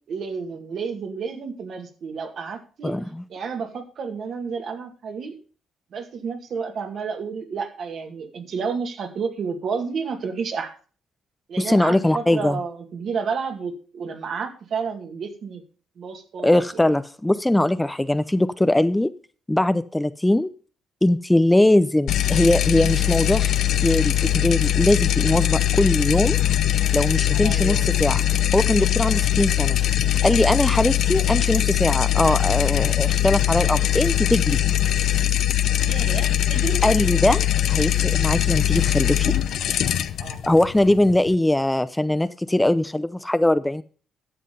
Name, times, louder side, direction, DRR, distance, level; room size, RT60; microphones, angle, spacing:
voice 1, 0.0-3.0 3.3-5.4 5.9-10.7 11.5-15.6 16.0-16.6 27.3-27.9 35.8-36.8 40.2-40.4, right 5 dB, 60° right, 5 dB, 2.2 m, -31 dB
voice 2, 2.8-3.2 11.6-12.6 16.4-19.1 19.5-20.5 21.0-23.5 23.8-26.4 26.9-28.3 28.5-29.8 30.2-34.6 36.8-39.3 40.4-43.8, left 1 dB, 10° left, 13 dB, 0.6 m, -21 dB
sound 1, 22.1-41.4, left 12 dB, 75° left, 0.7 m, -21 dB
11.5 x 7.5 x 5.4 m, 0.39 s
cardioid pair, 80°, 0 cm